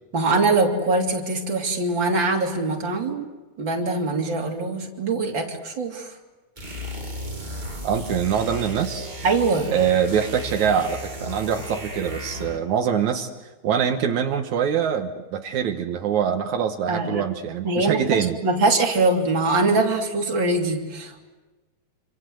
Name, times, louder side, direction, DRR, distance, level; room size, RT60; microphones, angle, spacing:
voice 1, 0.1-3.3 3.6-6.2 9.2-9.7 16.9-17.2 17.6-21.2, right 3 dB, 40° right, 1 dB, 3.7 m, -23 dB
sound 1, 6.6-12.7, left 1 dB, 15° right, 2.7 m, -34 dB
voice 2, 7.8-9.1 9.7-13.3 13.6-18.4, right 8 dB, 80° right, 5 dB, 2.7 m, -24 dB
27.5 x 26.5 x 7.9 m, 1.2 s
omnidirectional pair, 3.4 m